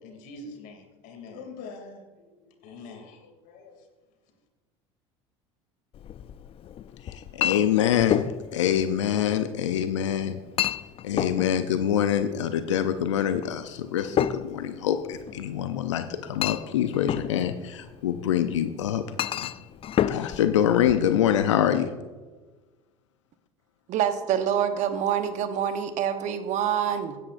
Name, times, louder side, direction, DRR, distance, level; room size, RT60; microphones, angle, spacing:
voice 1, 0.0-3.8, left 3 dB, 65° left, 4 dB, 2.7 m, -44 dB
Chink clink, 5.9-21.5, left 10 dB, 40° left, 0.5 m, -32 dB
voice 2, 7.0-8.3 8.5-10.4 11.0-19.0 20.1-21.9, left 10 dB, 85° left, 9 dB, 0.6 m, -25 dB
voice 3, 23.9-27.2, right 9 dB, 55° right, 9 dB, 1.1 m, -26 dB
15.5 x 11.0 x 2.6 m, 1.3 s
hypercardioid pair, 75°, 15 cm